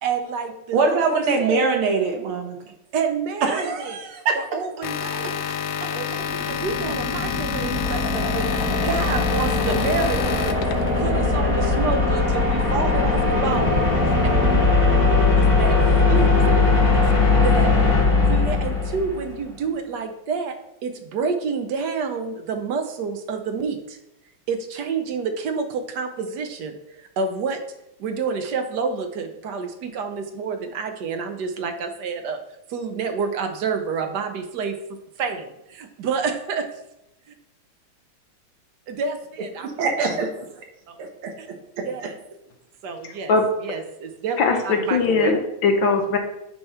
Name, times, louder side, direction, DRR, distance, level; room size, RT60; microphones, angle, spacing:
voice 1, 0.0-1.6 2.9-4.0 4.3-5.4 5.9-10.7 11.0-14.3 15.4-15.8 16.1-16.5 17.0-17.1 17.4-17.7 18.2-20.6 20.8-24.0 24.5-27.6 28.0-32.4 32.7-34.8 35.2-36.7 38.9-39.8 40.9-41.0 41.4-41.5 41.8-42.2 42.8-43.3 43.6-44.4 44.6-45.3, right 5 dB, 60° right, 6 dB, 1.2 m, -28 dB
voice 2, 0.7-2.6 3.4-4.4 39.6-40.4 41.2-41.3, right 4 dB, 90° right, 3 dB, 2.0 m, -22 dB
sound 1, 4.8-11.0, left 8 dB, 85° left, 1.5 m, -29 dB
sound 2, 6.2-19.3, left 3 dB, 45° left, 2.0 m, -20 dB
voice 3, 44.4-46.2, left 4 dB, 70° left, 4 dB, 1.7 m, -20 dB
8.8 x 3.1 x 5.5 m, 0.85 s
omnidirectional pair, 2.3 m